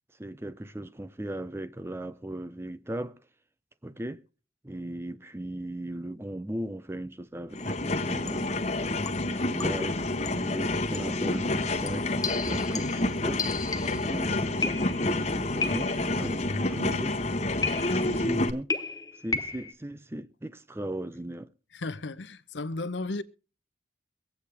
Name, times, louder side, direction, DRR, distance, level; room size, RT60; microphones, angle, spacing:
voice 1, 0.2-3.2 3.8-4.3 4.6-8.5 9.2-12.1 12.4-13.5 14.0-17.2 17.8-18.7 19.2-21.5, right 1 dB, 15° right, 0.5 m, -37 dB
sound 1, 7.5-18.5, left 2 dB, 40° left, 1.1 m, -29 dB
sound 2, 7.5-7.8 8.3-8.6 9.1-9.9 10.2-10.5 10.9-11.2 11.9-14.1 14.6-15.2 15.6-16.2 17.6-18.2 18.7-19.7, left 4 dB, 20° left, 0.8 m, -34 dB
voice 2, 13.9-14.2 21.7-23.2, left 2 dB, 80° left, 0.8 m, -35 dB
23.5 x 8.4 x 3.4 m
head